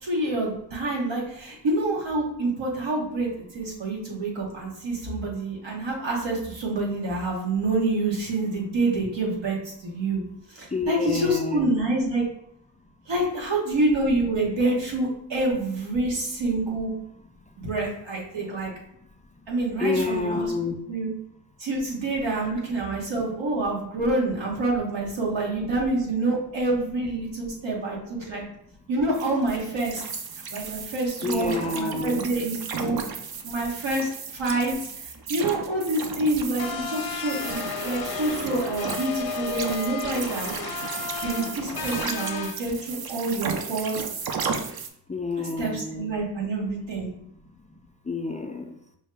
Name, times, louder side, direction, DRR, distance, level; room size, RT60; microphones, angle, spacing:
voice 1, 0.0-10.2 10.5-12.2 13.1-16.9 17.6-18.7 19.5-20.5 20.9-21.1 21.6-28.4 28.9-30.0 30.5-33.0 33.4-34.9 35.3-40.5 41.2-44.0 45.4-47.1, right 2 dB, 85° right, -2 dB, 1.3 m, -27 dB
voice 2, 10.7-11.7 19.8-20.8 31.2-32.3 45.1-46.1 48.1-48.7, left 3 dB, 20° left, 3 dB, 0.3 m, -28 dB
sound 1, 29.1-44.9, right 5 dB, 55° right, 0.6 m, -35 dB
sound 2, 36.6-42.5, left 5 dB, 55° left, 0.6 m, -33 dB
5.4 x 2.2 x 3.3 m, 0.69 s
cardioid pair, 70°, 44 cm